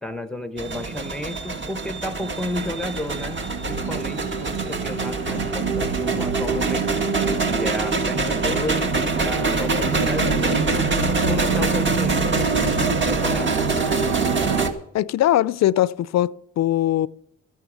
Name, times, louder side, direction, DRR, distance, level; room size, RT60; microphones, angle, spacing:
voice 1, 0.0-3.4 3.7-6.9 7.5-10.6 11.1-13.5, left 1 dB, ahead, 0.8 m, -32 dB
sound 1, 0.6-14.7, right 3 dB, 40° right, 1.9 m, -25 dB
sound 2, 2.2-14.7, right 4 dB, 85° right, 1.2 m, -27 dB
voice 2, 14.9-17.1, left 13 dB, 60° left, 0.5 m, -21 dB
13.5 x 9.4 x 6.1 m
cardioid pair, 90°, 30 cm